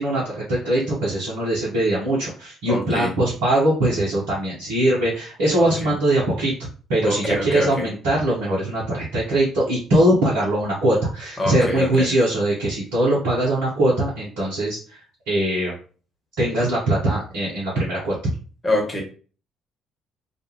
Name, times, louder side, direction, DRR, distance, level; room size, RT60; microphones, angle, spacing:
voice 1, 0.0-15.0 15.3-15.7 16.4-18.1, right 1 dB, 70° right, -7 dB, 0.8 m, -21 dB
voice 2, 2.7-3.1 5.8-5.9 7.0-7.8 11.4-12.1 18.6-19.0, left 1 dB, 25° left, 0 dB, 1.2 m, -24 dB
2.5 x 2.3 x 2.9 m, 0.39 s
figure-of-eight pair, 45°, 0 cm